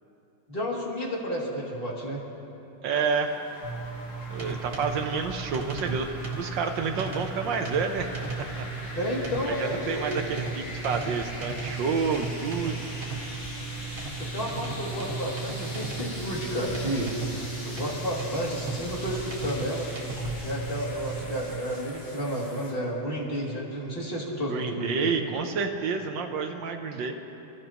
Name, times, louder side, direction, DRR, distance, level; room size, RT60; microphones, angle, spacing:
voice 1, 0.5-2.2 8.9-10.3 14.2-17.3 17.6-19.9 20.4-25.1, equal, 25° left, -3 dB, 2.5 m, -31 dB
voice 2, 2.8-3.4 4.3-8.1 9.5-12.8 24.5-27.2, right 5 dB, 70° right, 5 dB, 1.4 m, -29 dB
sound 1, 3.2-22.7, left 1 dB, 90° left, 4.6 m, -41 dB
sound 2, 3.6-21.5, right 4 dB, 35° right, 1.6 m, -36 dB
29.0 x 13.0 x 2.9 m, 3.0 s
omnidirectional pair, 2.2 m